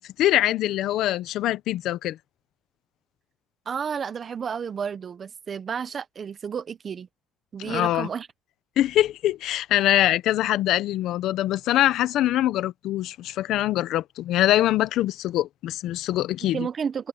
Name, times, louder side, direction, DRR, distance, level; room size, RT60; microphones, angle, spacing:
voice 1, 0.2-2.2 7.6-8.1 8.8-16.7, left 14 dB, 65° left, 0.8 m, -23 dB
voice 2, 3.7-7.1 7.5-8.3 16.5-17.1, right 6 dB, 35° right, 0.9 m, -31 dB
cardioid pair, 130°, 0 cm